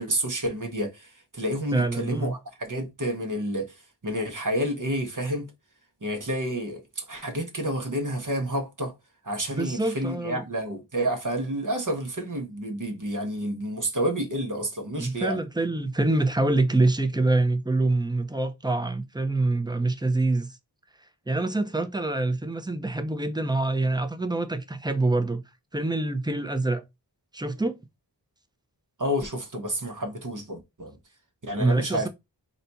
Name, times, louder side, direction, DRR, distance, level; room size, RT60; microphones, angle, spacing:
voice 1, 0.0-3.7 4.0-5.5 6.0-8.9 9.2-15.4 29.0-31.0 31.4-32.1, right 1 dB, 45° right, 1.0 m, -29 dB
voice 2, 1.7-2.3 9.5-10.4 15.0-20.6 21.3-25.4 25.7-26.8 27.3-27.8 31.6-32.1, right 2 dB, 10° right, 0.6 m, -25 dB
4.1 x 2.3 x 4.0 m
wide cardioid pair, 45°, 42 cm